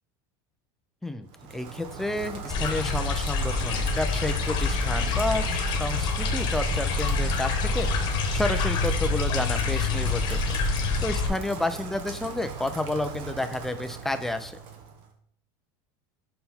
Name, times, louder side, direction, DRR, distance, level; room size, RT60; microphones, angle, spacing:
voice 1, 1.0-7.9 8.3-10.6 11.0-14.6, left 2 dB, 5° left, 8 dB, 0.4 m, -30 dB
Rain, 1.3-15.1, right 6 dB, 50° right, 1.0 m, -39 dB
sound 1, 2.5-11.3, left 4 dB, 40° left, 1.2 m, -26 dB
5.7 x 5.5 x 4.3 m, 0.65 s
cardioid pair, 160°, 11 cm